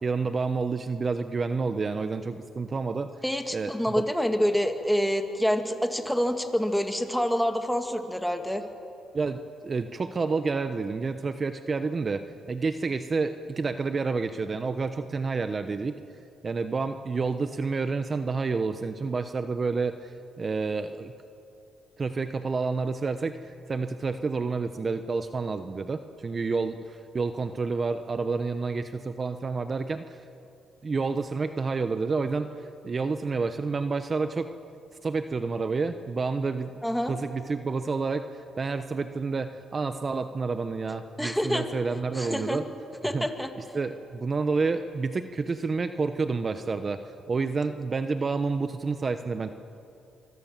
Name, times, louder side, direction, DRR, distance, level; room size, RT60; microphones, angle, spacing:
voice 1, 0.0-3.1 3.5-4.0 9.1-16.0 16.4-21.1 22.0-23.4 23.7-30.2 30.8-32.5 32.8-34.5 35.0-36.8 37.1-42.7 43.1-43.3 43.6-49.5, right 4 dB, 35° right, 9 dB, 1.0 m, -29 dB
voice 2, 3.2-8.6 36.8-37.2 41.2-41.7 42.1-42.6 43.0-43.5, equal, ahead, 6 dB, 2.3 m, -27 dB
25.5 x 24.0 x 7.4 m, 2.7 s
cardioid pair, 90°, 0 cm